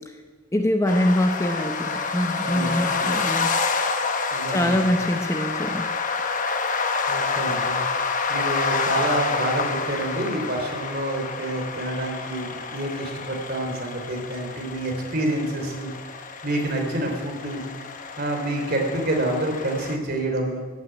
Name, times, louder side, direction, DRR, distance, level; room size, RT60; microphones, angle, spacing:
voice 1, 0.5-3.5 4.5-5.9 6.2-6.4, left 1 dB, 15° left, 5 dB, 0.8 m, -24 dB
sound 1, 0.9-20.0, left 4 dB, 40° left, 1.1 m, -28 dB
voice 2, 2.4-3.2 4.3-4.8 7.1-7.8 8.3-15.9 16.4-17.6 18.2-20.6, right 1 dB, 45° right, 2 dB, 3.3 m, -28 dB
14.5 x 9.4 x 8.9 m, 1.5 s
head